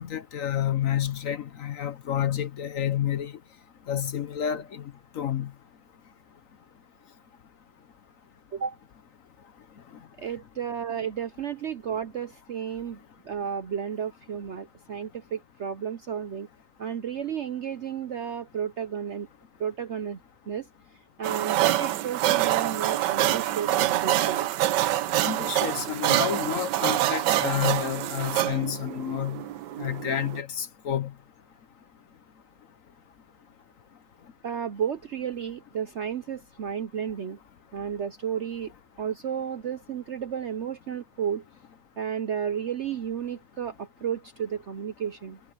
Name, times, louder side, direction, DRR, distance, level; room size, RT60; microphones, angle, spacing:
voice 1, 0.0-3.3 3.9-4.8 5.1-5.5 25.2-29.4 29.8-31.1, left 10 dB, 55° left, 1.1 m, -29 dB
voice 2, 10.2-13.0 13.2-16.5 16.8-19.3 19.6-20.2 20.5-20.7 21.2-24.5 34.4-37.4 37.7-38.7 39.0-41.4 42.0-45.4, right 8 dB, 60° right, 0.8 m, -32 dB
sound 1, 21.2-30.4, right 14 dB, 80° right, 1.3 m, -26 dB
omnidirectional pair, 1.9 m